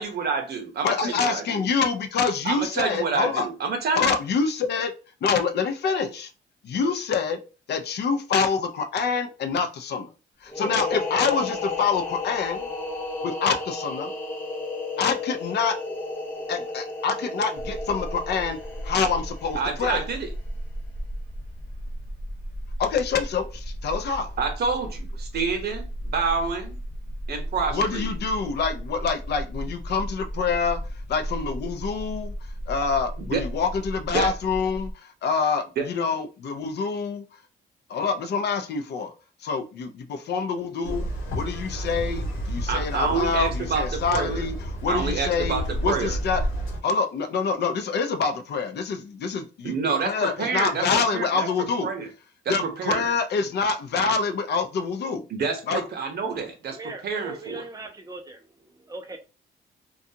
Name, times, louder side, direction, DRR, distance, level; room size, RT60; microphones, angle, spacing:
voice 1, 0.0-1.7 2.4-4.1 19.5-20.3 24.4-26.8 27.3-28.1 33.2-33.4 34.1-34.3 35.8-35.9 42.7-44.4 44.9-46.2 49.6-50.8 51.1-51.5 51.8-52.1 52.4-53.0 55.3-56.8 57.0-57.6, right 5 dB, 55° right, 0.8 m, -28 dB
voice 2, 0.8-3.5 4.0-4.9 5.2-6.3 6.6-7.4 7.7-10.1 10.4-12.7 13.2-14.1 15.0-15.8 16.5-18.6 18.8-20.0 22.8-24.3 27.7-30.8 31.1-32.3 32.7-37.2 37.9-39.1 39.4-44.5 44.8-46.4 46.8-49.7 50.0-51.9 52.5-55.3 55.7-55.8, left 5 dB, 55° left, 0.5 m, -26 dB
sound 1, 10.5-20.0, left 3 dB, 10° left, 1.0 m, -33 dB
sound 2, 17.6-34.9, equal, 40° left, 1.1 m, -35 dB
sound 3, 40.8-46.8, equal, 90° left, 1.0 m, -30 dB
voice 3, 56.7-59.2, right 3 dB, 20° right, 0.6 m, -40 dB
2.5 x 2.3 x 2.7 m
cardioid pair, 90°, 20 cm